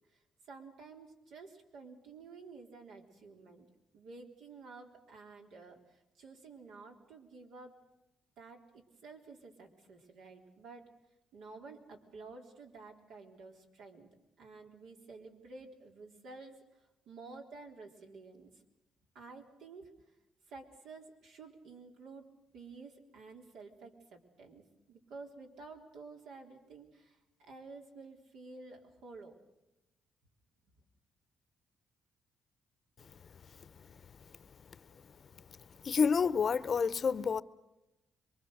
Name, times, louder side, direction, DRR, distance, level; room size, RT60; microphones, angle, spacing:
voice 1, 0.1-7.8 8.4-10.9 11.3-18.6 19.1-19.9 20.5-29.4, right 3 dB, 85° right, 3.8 m, -52 dB
voice 2, 35.8-37.4, left 6 dB, 45° left, 0.8 m, -28 dB
26.5 x 23.0 x 6.6 m
cardioid pair, 90°, 0 cm